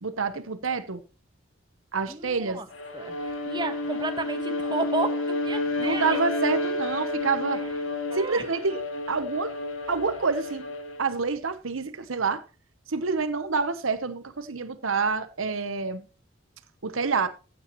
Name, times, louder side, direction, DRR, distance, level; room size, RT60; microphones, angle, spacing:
voice 1, 0.0-1.0 1.9-2.6 5.8-7.6 8.1-8.8 9.1-9.5 9.9-10.7 11.0-12.4 12.9-16.0 16.8-17.3, right 4 dB, 90° right, 1.0 m, -27 dB
voice 2, 2.1-2.7 2.9-6.2 8.1-8.4, right 3 dB, 20° right, 1.3 m, -32 dB
Bowed string instrument, 2.7-11.1, left 2 dB, 80° left, 2.1 m, -30 dB
15.5 x 8.7 x 3.1 m
head